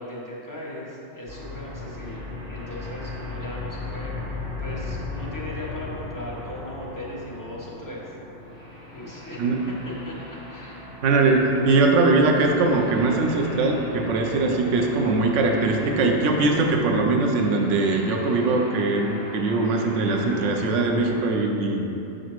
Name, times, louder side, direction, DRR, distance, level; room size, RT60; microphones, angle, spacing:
voice 1, 0.0-4.1 4.6-8.0 8.9-9.4 9.9-12.1, left 1 dB, 15° left, -6 dB, 1.0 m, -38 dB
sound 1, 1.3-21.2, left 2 dB, 25° right, 1.5 m, -38 dB
voice 2, 11.0-21.8, right 3 dB, 80° right, 2 dB, 1.0 m, -21 dB
6.5 x 6.5 x 3.0 m, 2.8 s
omnidirectional pair, 1.3 m